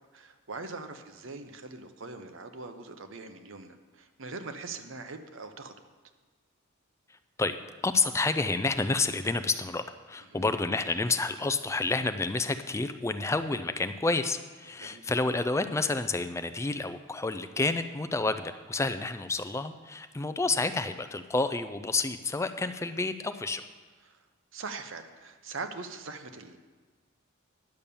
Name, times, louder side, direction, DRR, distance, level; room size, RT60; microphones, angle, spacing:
voice 1, 0.1-5.9 10.3-10.5 14.8-15.0 24.1-24.2 24.5-26.6, right 3 dB, 65° right, 8 dB, 0.9 m, -42 dB
voice 2, 7.1-7.6 7.8-23.6, left 3 dB, 15° left, 10 dB, 0.4 m, -29 dB
10.5 x 7.1 x 6.9 m, 1.4 s
head